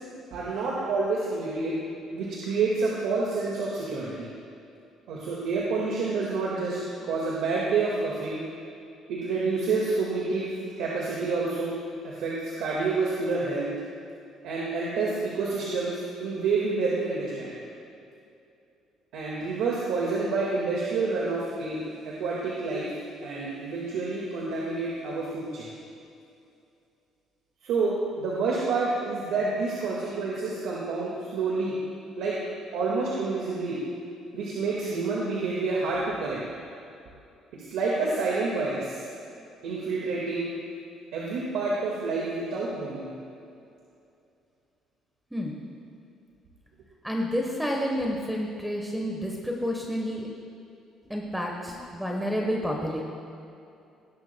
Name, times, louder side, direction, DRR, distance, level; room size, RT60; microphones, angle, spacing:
voice 1, 0.3-1.8 2.1-4.3 5.1-8.4 9.1-10.5 10.8-11.7 12.0-13.7 14.4-17.5 19.1-21.8 22.1-22.9 23.2-25.7 27.6-31.8 32.2-32.4 32.7-33.8 34.3-36.4 37.7-39.0 39.6-40.5 41.1-43.1, right 3 dB, 85° right, -5 dB, 1.8 m, -28 dB
voice 2, 47.0-50.3 51.1-53.0, equal, 5° right, 0 dB, 1.1 m, -29 dB
18.0 x 11.5 x 2.3 m, 2.6 s
cardioid pair, 130°, 0 cm